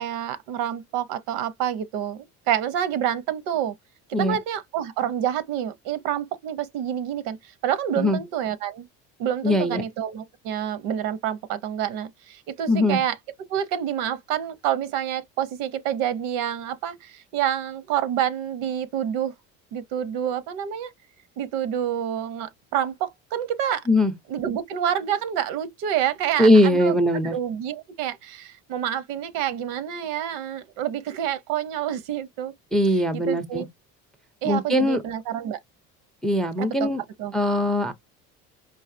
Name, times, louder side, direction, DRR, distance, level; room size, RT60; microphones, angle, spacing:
voice 1, 0.0-3.7 4.1-8.9 9.2-13.2 13.5-19.3 19.7-20.9 21.4-23.9 24.3-27.0 27.3-32.5 33.1-33.7 34.4-35.6 36.6-36.9 37.2-37.3, right 10 dB, 90° right, 0.7 m, -28 dB
voice 2, 9.4-9.8 12.7-13.0 23.9-24.1 26.4-27.3 32.7-33.7 34.4-35.0 36.2-37.0 37.3-37.9, left 1 dB, ahead, 0.3 m, -20 dB
4.7 x 2.4 x 2.5 m
cardioid pair, 140°, 34 cm